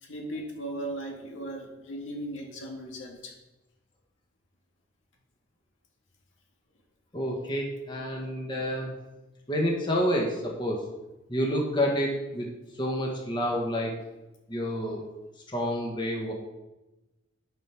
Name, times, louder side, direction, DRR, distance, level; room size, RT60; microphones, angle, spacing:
voice 1, 0.0-3.3, right 1 dB, 80° left, 1 dB, 2.1 m, -37 dB
voice 2, 7.1-9.0 9.5-10.8 11.3-12.5 12.7-13.9 14.5-15.0 15.5-16.3, equal, 25° left, -1 dB, 1.7 m, -28 dB
10.5 x 5.4 x 6.0 m, 1.0 s
head